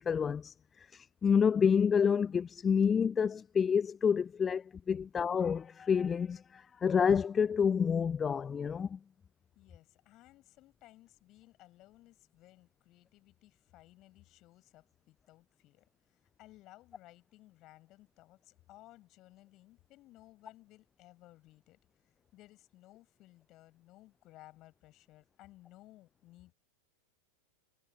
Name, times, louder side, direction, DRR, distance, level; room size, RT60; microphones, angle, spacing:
voice 1, 0.0-9.0, left 7 dB, 20° left, 0.4 m, -29 dB
voice 2, 9.5-21.8 22.3-26.5, left 17 dB, 35° left, 7.6 m, -59 dB
figure-of-eight pair, 90°, 0 cm